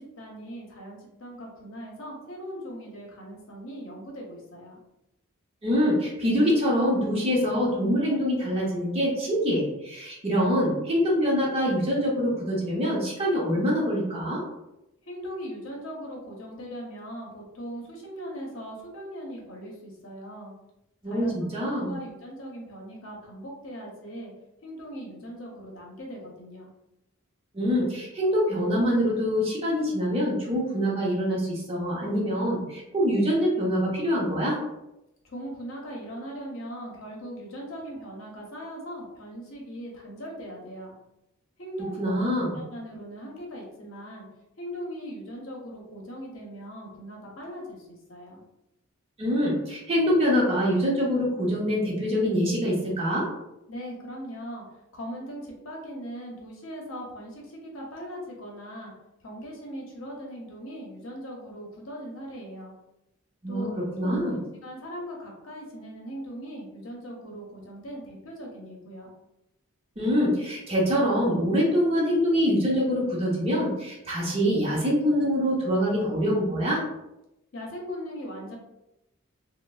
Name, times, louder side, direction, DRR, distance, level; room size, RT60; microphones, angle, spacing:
voice 1, 0.0-4.8 15.0-20.5 21.0-24.3 24.6-26.7 35.2-40.9 41.6-44.2 44.6-48.4 53.7-58.9 59.2-62.7 63.5-69.1 77.5-78.6, equal, 70° left, -1 dB, 0.7 m, -39 dB
voice 2, 5.6-14.4 21.0-21.9 27.5-34.6 42.0-42.6 49.2-53.3 63.4-64.4 70.0-76.8, equal, 30° right, -4 dB, 0.7 m, -25 dB
3.1 x 2.0 x 2.3 m, 0.90 s
head